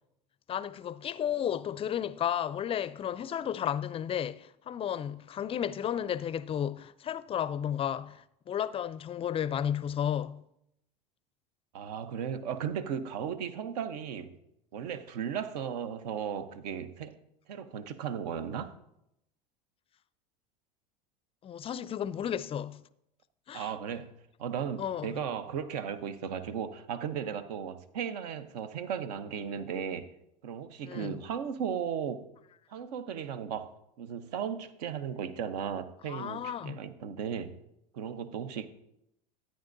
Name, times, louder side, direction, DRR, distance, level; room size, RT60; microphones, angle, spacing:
voice 1, 0.5-10.4 21.4-22.8 23.5-23.7 24.8-25.2 30.8-31.2 36.1-36.8, left 9 dB, 25° left, 0.4 m, -33 dB
voice 2, 11.7-14.3 14.7-17.2 17.5-18.7 23.5-24.1 24.4-30.1 30.4-32.3 32.7-33.7 34.0-37.6 37.9-38.7, right 7 dB, 75° right, 0.8 m, -36 dB
13.0 x 9.6 x 2.6 m
hypercardioid pair, 90°, 21 cm